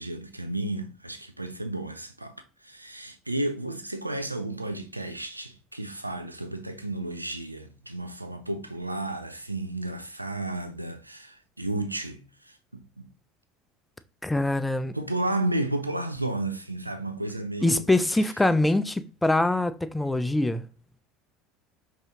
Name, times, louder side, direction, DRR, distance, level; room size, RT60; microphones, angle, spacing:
voice 1, 0.0-13.1 14.9-17.9, right 2 dB, 90° right, 0.5 m, -32 dB
voice 2, 14.2-15.0 17.6-20.6, left 2 dB, 10° left, 0.3 m, -24 dB
5.5 x 2.8 x 2.8 m
figure-of-eight pair, 70°, 0 cm